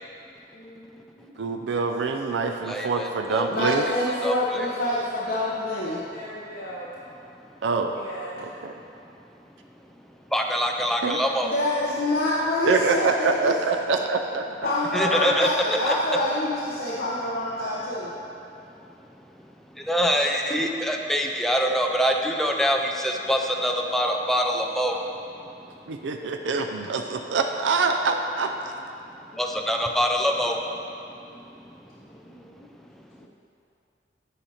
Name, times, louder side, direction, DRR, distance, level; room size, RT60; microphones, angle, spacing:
voice 1, 0.5-1.3 3.5-6.9 7.9-8.3 11.4-13.5 14.6-18.1 29.3-29.6 31.1-31.5 32.2-32.7 33.2-33.3, left 1 dB, 55° left, -7 dB, 0.9 m, -27 dB
voice 2, 1.4-3.9 7.6-7.9 8.4-8.7 11.0-11.2 12.7-14.5 25.9-28.7, right 4 dB, 85° right, 5 dB, 0.4 m, -25 dB
voice 3, 2.7-3.5 4.2-4.7 10.3-11.5 14.9-15.5 15.9-16.0 19.7-25.2 25.6-25.7 29.4-30.6, equal, ahead, 2 dB, 0.5 m, -24 dB
8.9 x 4.9 x 4.2 m, 2.6 s
head